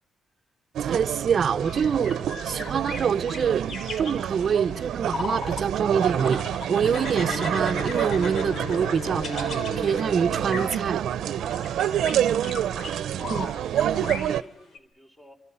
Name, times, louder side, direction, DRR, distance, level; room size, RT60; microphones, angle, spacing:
sound 1, 0.7-14.4, right 10 dB, 85° right, 0.8 m, -28 dB
voice 1, 0.8-2.2 2.4-3.7 4.0-6.4 6.7-11.0 13.3-13.5, right 7 dB, 50° right, 0.8 m, -25 dB
sound 2, 1.5-5.7 5.9-10.0 10.5-10.9 11.3-14.8, left 4 dB, 65° left, 4.6 m, -38 dB
sound 3, 6.8-10.8, left 7 dB, 85° left, 0.8 m, -38 dB
voice 2, 11.8-13.1 13.4-15.3, equal, 15° left, 5.4 m, -51 dB
28.0 x 26.5 x 5.7 m
cardioid pair, 95°, 0 cm